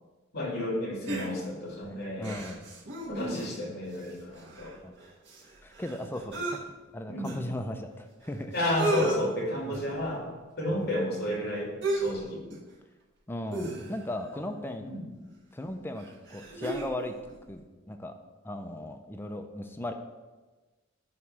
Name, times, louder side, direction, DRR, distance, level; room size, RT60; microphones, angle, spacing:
voice 1, 0.3-2.4 3.1-4.7 7.1-7.3 8.5-10.3 10.6-12.4 14.8-15.0, left 1 dB, 55° left, -2 dB, 2.3 m, -31 dB
sound 1, 1.1-1.7 2.2-3.7 4.0-4.1 4.3-6.6 7.2-7.3 8.2-8.3 8.6-9.2 9.7-10.0 11.8-12.2 12.5-12.7 13.5-14.2 15.3-15.4 16.0-17.0 17.3-17.4, right 2 dB, 65° right, 1.6 m, -34 dB
voice 2, 1.8-2.6 4.8-4.9 5.6-8.5 9.6-9.8 10.7-10.9 13.3-14.9 15.5-16.1 16.3-17.1 17.5-18.2 18.4-19.9, left 1 dB, 10° left, 6 dB, 0.5 m, -37 dB
9.6 x 3.2 x 6.0 m, 1.2 s
head